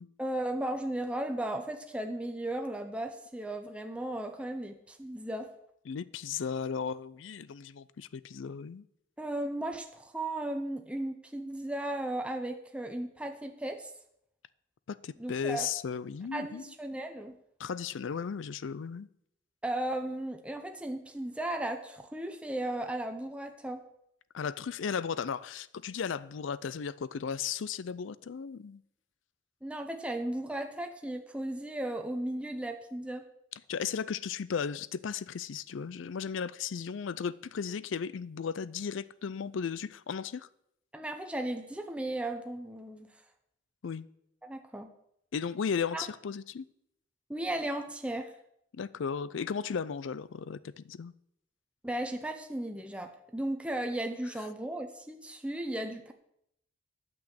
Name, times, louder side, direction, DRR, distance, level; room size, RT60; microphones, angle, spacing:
voice 1, 0.2-5.5 9.2-13.9 15.2-15.7 16.3-17.3 19.6-23.8 29.6-33.2 40.9-43.1 44.4-44.9 45.9-46.1 47.3-48.3 51.8-56.1, right 1 dB, 5° right, 0.6 m, -35 dB
voice 2, 5.9-8.8 14.9-16.6 17.6-19.1 24.3-28.8 33.7-40.5 43.8-44.1 45.3-46.7 48.8-51.1, left 6 dB, 80° left, 0.4 m, -35 dB
8.7 x 6.2 x 8.0 m
head